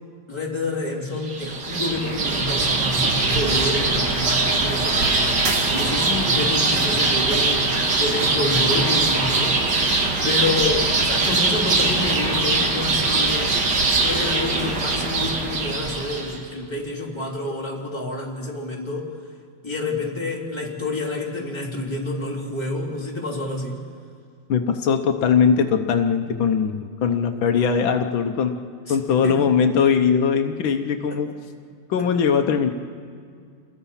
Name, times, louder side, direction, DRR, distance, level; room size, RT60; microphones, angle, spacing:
voice 1, 0.3-10.0 10.2-13.5 13.9-19.1 19.6-23.8 28.9-29.4, left 2 dB, 15° left, -3 dB, 3.4 m, -28 dB
sound 1, 1.2-16.4, right 3 dB, 60° right, 2.5 m, -21 dB
voice 2, 24.5-28.5 28.9-31.3 31.9-32.7, left 6 dB, 80° left, 6 dB, 1.7 m, -20 dB
28.5 x 20.5 x 5.6 m, 2.2 s
omnidirectional pair, 2.1 m